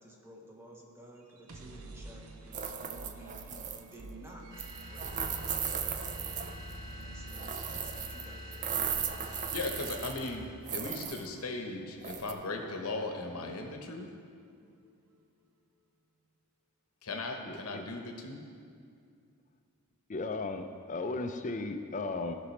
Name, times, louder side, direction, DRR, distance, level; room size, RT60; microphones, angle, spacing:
voice 1, 0.0-5.9 6.9-8.7, right 1 dB, 10° right, -1 dB, 1.0 m, -54 dB
sound 1, 1.2-15.1, right 2 dB, 65° right, 0.7 m, -51 dB
sound 2, 2.5-3.9 4.6-6.7 7.3-8.2 8.5-10.3 10.7-11.3 12.0-12.3, right 8 dB, 35° right, 0.4 m, -37 dB
sound 3, 4.5-10.6, equal, 50° right, 2.0 m, -45 dB
voice 2, 9.3-14.1 17.0-18.4, left 2 dB, 70° left, 3 dB, 1.0 m, -38 dB
voice 3, 17.4-17.8 20.1-22.3, left 3 dB, 35° left, 6 dB, 0.5 m, -36 dB
13.5 x 6.1 x 3.3 m, 2.3 s
head